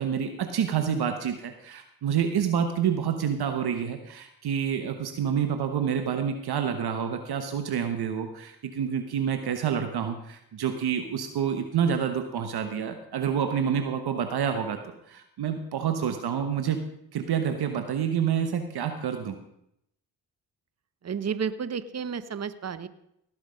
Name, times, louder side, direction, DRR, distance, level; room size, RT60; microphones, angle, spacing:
voice 1, 0.0-14.8 15.1-16.8 17.1-19.4, right 8 dB, 65° right, 6 dB, 1.2 m, -28 dB
voice 2, 21.0-22.9, right 6 dB, 40° right, 14 dB, 1.0 m, -31 dB
18.0 x 6.3 x 5.1 m, 0.78 s
supercardioid pair, 55°, 42 cm